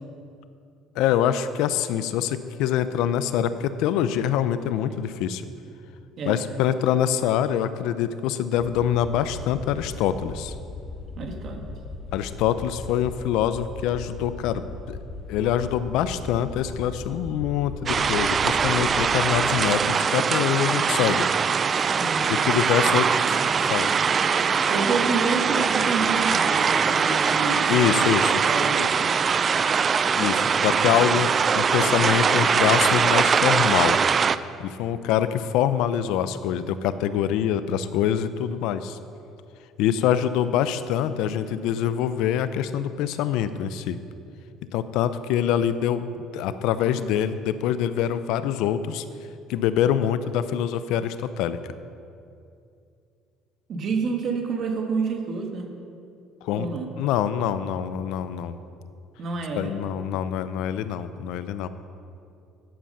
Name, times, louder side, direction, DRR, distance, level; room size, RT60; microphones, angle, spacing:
voice 1, 1.0-5.4 6.3-10.5 12.1-14.6 14.9-15.0 15.3-21.3 22.3-23.1 23.7-23.9 27.7-28.3 28.7-28.9 30.1-34.0 34.6-39.0 39.8-44.0 44.7-49.0 49.5-51.6 56.4-56.7 57.0-58.6 59.6-61.7, left 10 dB, 75° left, 12 dB, 0.5 m, -25 dB
sound 1, 8.6-19.0, left 3 dB, 5° left, 2.3 m, -38 dB
voice 2, 11.2-11.6 22.0-22.3 22.8-23.0 24.7-28.2 28.5-28.9 53.7-55.7 56.6-56.9 59.2-59.7, right 4 dB, 50° right, 3 dB, 1.5 m, -28 dB
sound 2, 17.9-34.4, right 6 dB, 35° right, 0.3 m, -22 dB
10.0 x 7.1 x 5.4 m, 2.5 s
cardioid pair, 110°, 0 cm